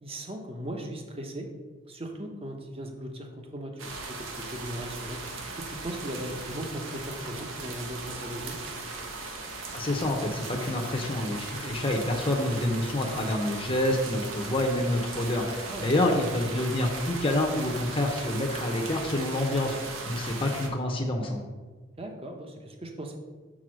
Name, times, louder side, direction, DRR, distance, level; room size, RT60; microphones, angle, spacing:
voice 1, 0.0-1.5 1.8-5.2 5.5-8.6 15.7-15.9 22.0-23.2, right 1 dB, 30° right, 3 dB, 0.9 m, -38 dB
sound 1, 3.8-20.7, right 3 dB, 80° right, 1.1 m, -38 dB
voice 2, 9.7-21.4, left 1 dB, 25° left, 0 dB, 0.8 m, -28 dB
6.2 x 4.4 x 6.3 m, 1.4 s
head